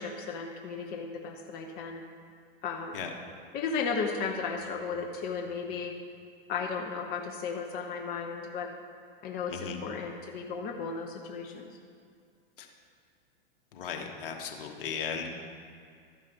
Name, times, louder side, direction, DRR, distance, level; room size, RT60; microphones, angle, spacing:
voice 1, 0.0-2.0 2.6-3.0 3.5-5.9 6.5-8.7 9.2-11.7, left 5 dB, 30° left, 1 dB, 0.9 m, -35 dB
voice 2, 9.5-9.8 12.6-12.7 13.7-15.3, left 7 dB, 65° left, 3 dB, 1.4 m, -36 dB
12.5 x 5.4 x 5.2 m, 2.2 s
hypercardioid pair, 115°, 29 cm